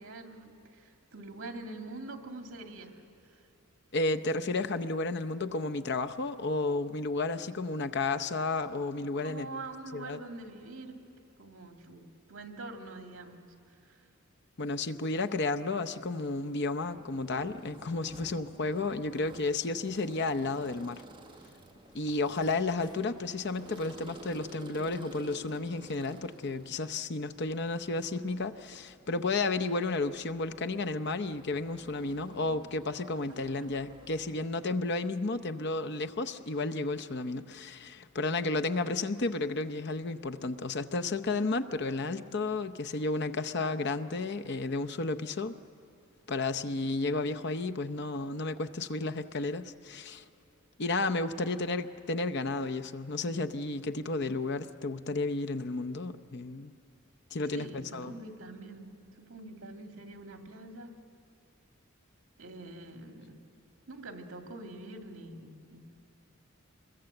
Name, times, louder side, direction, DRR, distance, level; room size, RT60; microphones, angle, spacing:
voice 1, 0.0-3.0 3.3-3.5 9.2-11.0 11.4-13.4 13.9-14.0 51.4-51.8 57.5-58.9 59.2-60.9 62.4-63.4 63.9-65.8, right 2 dB, 70° right, 4 dB, 2.1 m, -45 dB
voice 2, 3.9-9.5 9.9-10.2 14.6-21.0 21.9-45.6 46.3-50.2 50.8-56.7 57.3-58.1, left 3 dB, 55° left, 8 dB, 0.8 m, -32 dB
sound 1, 16.8-34.5, right 2 dB, 25° right, 1.4 m, -53 dB
sound 2, 21.6-25.9 26.3-26.5, equal, 20° left, 5.7 m, -59 dB
26.0 x 21.5 x 7.9 m, 2.5 s
head